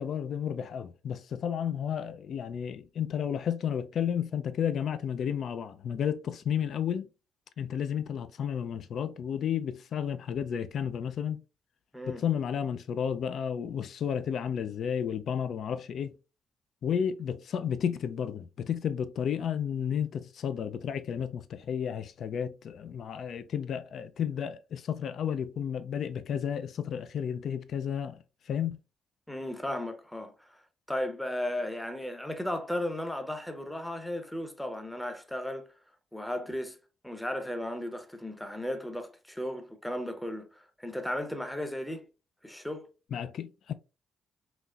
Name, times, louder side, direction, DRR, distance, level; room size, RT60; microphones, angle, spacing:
voice 1, 0.0-7.0 7.6-11.4 12.1-16.1 16.8-28.2 28.5-28.8 43.1-43.7, left 8 dB, 65° left, 0.4 m, -32 dB
voice 2, 29.3-30.3 30.9-35.7 36.1-36.8 37.0-42.0 42.4-42.9, left 1 dB, 5° left, 0.7 m, -35 dB
4.0 x 2.9 x 2.3 m
cardioid pair, 90°, 0 cm